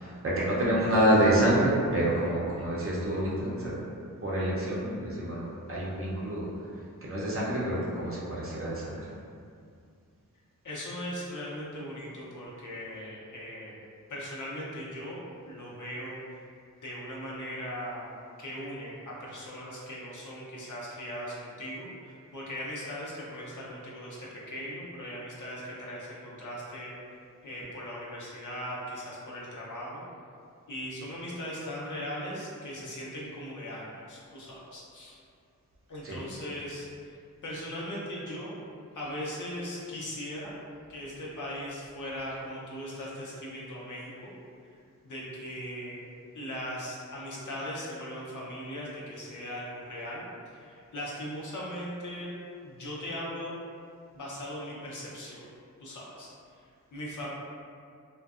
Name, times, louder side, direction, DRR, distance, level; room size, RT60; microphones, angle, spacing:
voice 1, 0.0-3.7 4.2-6.5 7.0-9.1 36.0-36.2, right 1 dB, 40° right, -7 dB, 0.6 m, -27 dB
voice 2, 10.6-13.8 14.1-16.2 16.8-18.1 18.4-26.9 27.4-30.0 30.7-35.2 35.9-37.2 37.4-38.6 38.9-40.5 40.9-44.3 45.0-46.1 46.3-50.2 50.5-52.3 52.6-53.5 54.1-55.5 55.8-56.3 56.6-57.3, equal, 65° left, -6 dB, 0.6 m, -39 dB
2.5 x 2.2 x 2.4 m, 2.3 s
wide cardioid pair, 75°, 33 cm